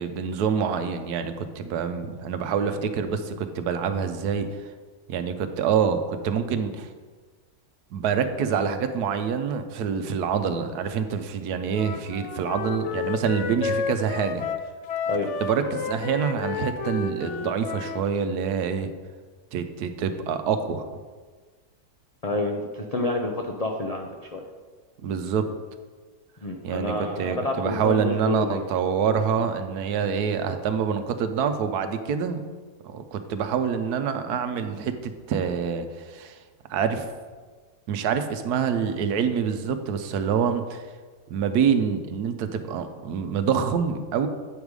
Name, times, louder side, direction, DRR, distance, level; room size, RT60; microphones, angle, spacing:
voice 1, 0.0-4.5 5.1-6.9 7.9-14.5 15.4-18.9 19.5-20.9 25.0-25.5 26.6-32.4 32.8-36.4 36.7-37.0 37.9-40.8 41.3-44.3, right 7 dB, 80° right, 8 dB, 1.2 m, -26 dB
Wind instrument woodwind instrument, 11.7-18.0, left 6 dB, 60° left, 0.8 m, -31 dB
voice 2, 15.1-15.4 22.2-24.4 26.4-28.6, left 2 dB, 85° left, 1 dB, 0.3 m, -29 dB
8.8 x 5.2 x 4.8 m, 1.4 s
omnidirectional pair, 1.7 m